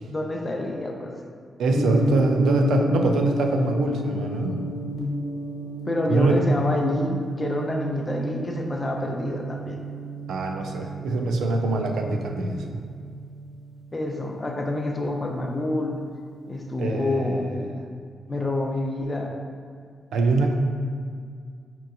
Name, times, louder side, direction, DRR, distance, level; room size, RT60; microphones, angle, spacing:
voice 1, 0.1-1.1 5.9-9.8 13.9-16.0 16.5-17.5 18.3-19.3, left 2 dB, 20° left, 1 dB, 0.4 m, -27 dB
voice 2, 1.6-4.6 6.1-6.4 10.3-12.6 16.8-17.6 20.1-20.5, right 3 dB, 85° right, 3 dB, 0.3 m, -23 dB
Gong, 1.7-15.9, right 1 dB, 90° left, 0.8 m, -32 dB
5.3 x 2.9 x 2.5 m, 2.2 s
cardioid pair, 125°, 0 cm